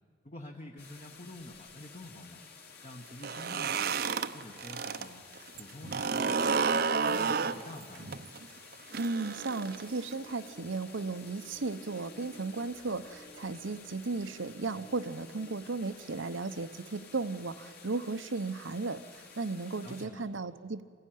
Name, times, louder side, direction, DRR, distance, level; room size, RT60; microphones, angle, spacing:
voice 1, 0.2-2.4 2.8-4.0 4.3-5.2 5.5-8.1 19.8-20.2, left 1 dB, 35° left, 2 dB, 1.2 m, -48 dB
sound 1, 0.8-20.1, left 5 dB, 55° left, 3.0 m, -53 dB
sound 2, 3.1-5.1 5.4-10.1, right 5 dB, 55° right, 0.7 m, -31 dB
voice 2, 9.0-20.8, right 3 dB, 80° right, 13 dB, 0.8 m, -35 dB
sound 3, 9.2-15.5, right 2 dB, 75° left, 5.4 m, -55 dB
27.0 x 16.0 x 9.2 m, 2.2 s
head